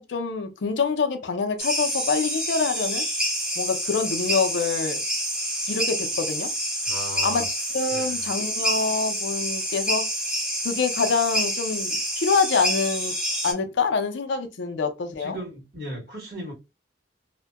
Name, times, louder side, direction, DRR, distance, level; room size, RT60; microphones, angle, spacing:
voice 1, 0.0-3.0 3.6-5.0 5.7-6.5 7.2-13.2 13.4-15.4, left 4 dB, 85° left, 0.5 m, -26 dB
sound 1, 1.6-13.5, equal, 5° right, 0.5 m, -28 dB
voice 2, 6.8-7.5 7.9-8.3 15.2-16.5, equal, 50° right, 1.4 m, -36 dB
2.6 x 2.1 x 2.2 m
head